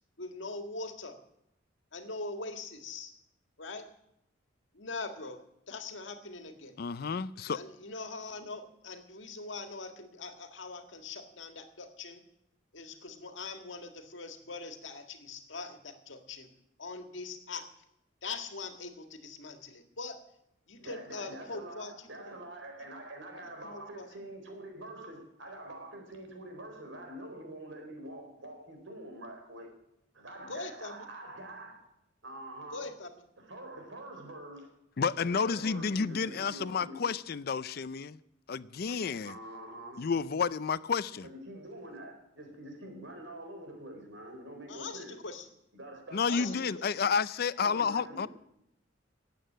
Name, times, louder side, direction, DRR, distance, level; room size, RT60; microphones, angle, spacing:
voice 1, 0.2-1.2 1.9-3.1 3.6-3.9 4.7-6.8 7.5-12.2 12.7-16.5 16.8-17.7 18.2-20.2 20.7-22.3 23.6-24.1 30.5-31.1 32.7-33.1 44.7-45.5 46.2-46.9, left 3 dB, 75° left, 1.8 m, -42 dB
voice 2, 6.8-7.6 35.0-38.2 38.5-39.4 40.0-41.3 46.1-48.3, left 5 dB, 55° left, 0.4 m, -31 dB
voice 3, 20.8-29.7 30.1-31.9 32.2-32.9 33.4-34.7 35.2-37.1 39.2-40.1 41.2-45.2 45.7-46.6 47.6-48.3, right 1 dB, 85° right, 4.4 m, -45 dB
14.0 x 8.7 x 9.1 m
head